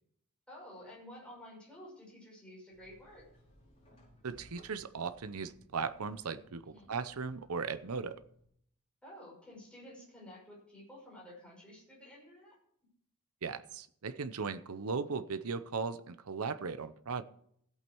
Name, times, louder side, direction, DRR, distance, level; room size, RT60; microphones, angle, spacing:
voice 1, 0.5-3.3 6.6-6.9 9.0-12.6, left 1 dB, 5° left, 5.7 m, -52 dB
sound 1, 2.7-8.5, equal, 30° left, 5.0 m, -62 dB
voice 2, 4.2-8.2 13.4-17.2, right 5 dB, 75° right, 0.7 m, -37 dB
15.5 x 8.5 x 4.6 m
head